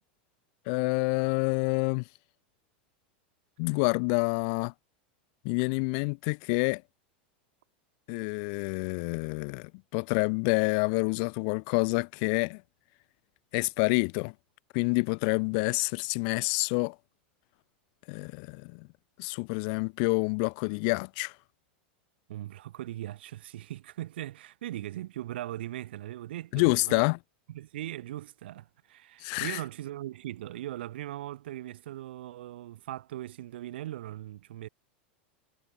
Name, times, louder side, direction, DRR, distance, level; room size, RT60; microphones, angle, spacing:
voice 1, 0.6-2.1 3.6-4.7 5.4-6.8 8.1-12.6 13.5-14.3 14.7-17.0 18.1-18.9 19.2-21.3 26.5-27.2 29.2-29.6, left 38 dB, 55° left, 1.4 m, -28 dB
voice 2, 22.3-27.0 27.5-34.7, right 14 dB, 80° right, 5.3 m, -39 dB
supercardioid pair, 135°, 6 cm